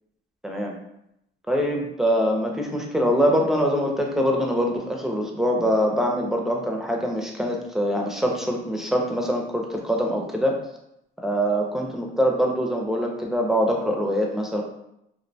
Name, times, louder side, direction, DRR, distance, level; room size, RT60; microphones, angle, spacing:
voice 1, 0.4-0.7 1.5-10.6 11.2-14.6, equal, ahead, 0 dB, 0.5 m, -24 dB
2.5 x 2.1 x 2.6 m, 0.80 s
cardioid pair, 90°, 20 cm